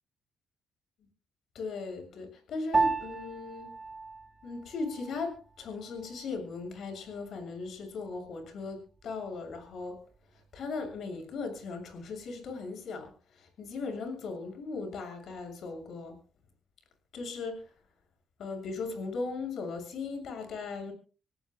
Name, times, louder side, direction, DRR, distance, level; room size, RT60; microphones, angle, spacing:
voice 1, 1.5-3.7 4.4-10.0 10.3-16.2 17.1-17.7 18.4-20.9, left 4 dB, 65° left, 5 dB, 6.7 m, -38 dB
Piano, 2.7-12.4, right 4 dB, 25° right, 1.8 m, -37 dB
27.0 x 18.0 x 2.2 m, 0.36 s
cardioid pair, 90°, 0 cm